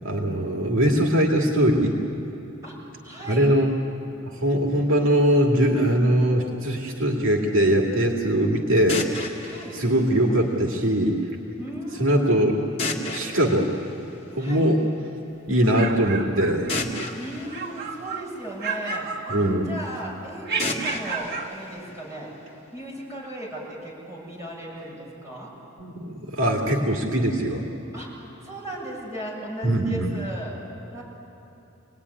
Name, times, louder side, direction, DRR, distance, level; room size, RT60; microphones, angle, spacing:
voice 1, 0.0-1.9 3.3-3.7 4.2-9.3 9.7-11.2 12.0-12.6 13.1-13.7 14.3-14.8 15.5-16.7 19.3-19.7 25.8-27.6 29.6-30.1, right 1 dB, 70° right, 0 dB, 2.4 m, -21 dB
voice 2, 2.6-3.5 9.4-9.7 11.6-12.8 14.4-14.7 17.2-19.3 19.6-22.3 22.7-25.5 27.9-28.2 28.4-30.5 30.9-31.0, right 1 dB, 15° right, -5 dB, 7.9 m, -36 dB
sound 1, 8.9-10.9 12.8-14.8 16.7-18.9 20.6-22.6, left 2 dB, 30° left, 2.4 m, -34 dB
sound 2, 15.5-17.1 17.5-18.3 18.6-19.9 20.4-21.5, right 5 dB, 50° right, 2.4 m, -32 dB
27.5 x 19.5 x 9.8 m, 3.0 s
head